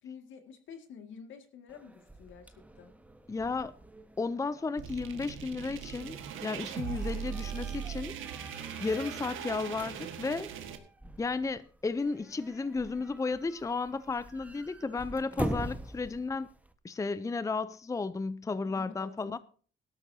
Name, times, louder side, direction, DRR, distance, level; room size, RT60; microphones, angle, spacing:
voice 1, 0.0-2.9 18.6-19.4, left 6 dB, 75° left, 2.2 m, -49 dB
sound 1, 1.7-16.7, right 1 dB, 5° right, 1.3 m, -44 dB
voice 2, 3.3-3.7 4.2-8.2 8.8-10.5 11.2-16.5 16.8-19.4, left 4 dB, 15° left, 0.6 m, -33 dB
sound 2, 4.8-10.8, right 8 dB, 85° right, 1.7 m, -39 dB
17.5 x 13.0 x 2.8 m
cardioid pair, 90°, 20 cm